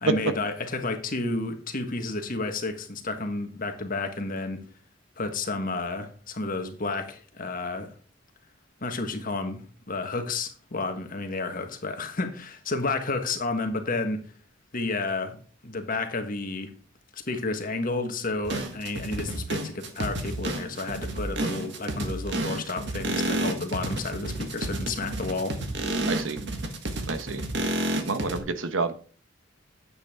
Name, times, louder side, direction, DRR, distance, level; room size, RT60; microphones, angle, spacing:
voice 1, 0.0-4.6 5.2-7.9 8.8-14.2 14.7-15.4 15.6-16.7 17.1-25.6, left 3 dB, 45° left, 1.5 m, -31 dB
sound 1, 18.4-28.4, right 1 dB, 60° right, 1.6 m, -30 dB
voice 2, 26.1-26.4 27.1-27.4 28.1-28.9, right 3 dB, 80° right, 1.1 m, -29 dB
9.7 x 8.3 x 3.6 m
head